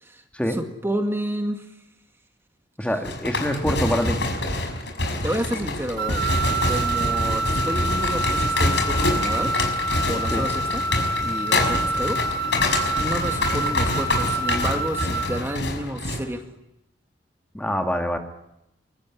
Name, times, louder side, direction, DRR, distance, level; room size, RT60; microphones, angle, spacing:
voice 1, 0.5-1.7 5.2-6.2 6.6-9.5 10.1-10.8 11.2-12.2 13.0-16.4, right 1 dB, 15° right, 4 dB, 2.0 m, -30 dB
voice 2, 2.8-4.2 10.3-10.5 17.5-18.2, equal, 5° left, 4 dB, 2.3 m, -25 dB
sound 1, 3.0-16.2, left 2 dB, 75° left, 5.9 m, -26 dB
sound 2, 6.0-15.6, right 3 dB, 80° right, 4.0 m, -27 dB
24.0 x 23.5 x 10.0 m, 0.86 s
head